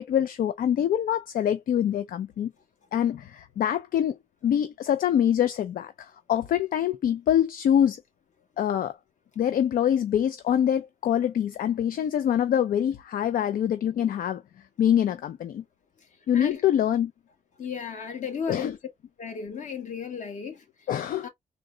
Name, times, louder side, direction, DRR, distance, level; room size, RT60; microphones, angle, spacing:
voice 1, 0.0-2.5 2.9-4.2 4.4-8.0 8.6-9.0 9.4-14.4 14.8-15.6 16.3-17.1 18.5-18.7 20.9-21.3, left 10 dB, 75° left, 0.4 m, -25 dB
voice 2, 17.6-18.8 19.2-20.9 21.2-21.3, left 6 dB, 55° left, 1.2 m, -34 dB
3.8 x 2.1 x 3.7 m
wide cardioid pair, 125°, 15 cm